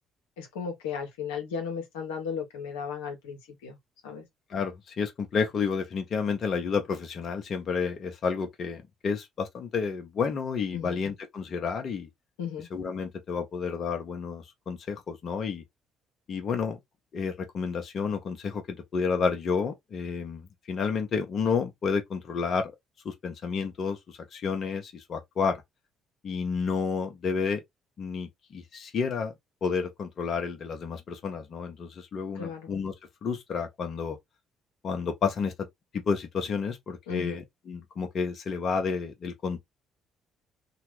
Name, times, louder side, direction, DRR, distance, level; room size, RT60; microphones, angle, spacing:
voice 1, 0.4-3.8 4.0-4.2 10.7-11.0 12.4-12.7 32.3-32.7 37.1-37.4, left 6 dB, 85° left, 0.8 m, -35 dB
voice 2, 4.5-12.1 12.7-15.6 16.3-16.8 17.1-22.7 23.0-25.6 26.2-27.6 28.0-29.3 29.6-32.9 33.2-34.2 34.8-35.5 35.9-39.6, left 5 dB, 55° left, 0.8 m, -30 dB
2.8 x 2.2 x 3.0 m
hypercardioid pair, 55°, 0 cm